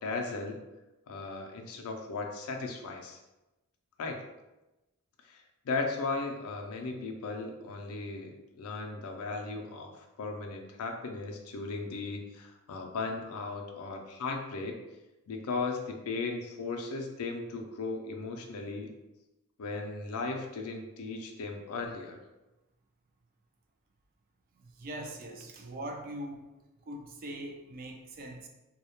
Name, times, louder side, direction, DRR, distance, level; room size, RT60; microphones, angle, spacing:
voice 1, 0.0-0.6 1.1-3.2 4.0-4.2 5.2-14.8 15.3-18.9 19.6-22.2, left 3 dB, 75° left, 3 dB, 0.4 m, -36 dB
voice 2, 24.6-26.5 26.9-28.5, right 1 dB, 40° right, 3 dB, 0.3 m, -41 dB
2.2 x 2.0 x 2.8 m, 1.0 s
head